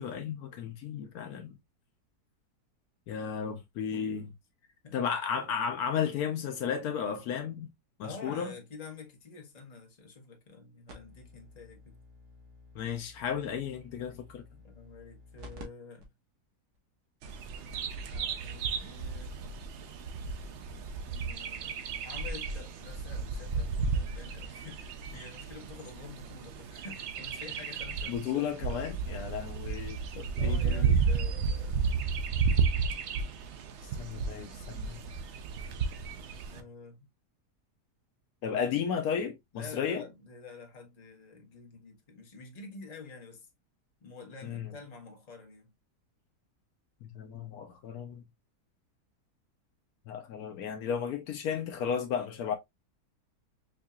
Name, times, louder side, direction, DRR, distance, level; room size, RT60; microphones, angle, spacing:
voice 1, 0.0-1.5 3.1-4.3 4.9-7.7 8.0-8.5 12.8-14.4 28.1-30.9 34.0-35.0 38.4-40.0 44.5-44.7 47.0-48.2 50.1-52.5, left 7 dB, 75° left, 1.0 m, -34 dB
voice 2, 4.6-5.0 8.0-12.0 14.6-16.1 18.1-19.4 20.7-28.8 30.4-31.8 36.5-37.1 39.5-43.5 44.0-45.7, left 4 dB, 30° left, 1.0 m, -48 dB
sound 1, 10.9-15.6 16.0-16.1 16.7-16.8 17.4-17.5 17.7-18.0 19.2-19.3, left 1 dB, 85° right, 1.6 m, -52 dB
Bird vocalization bird call bird song, 17.2-36.6, right 5 dB, 65° right, 0.7 m, -33 dB
4.7 x 2.7 x 2.3 m
omnidirectional pair, 1.7 m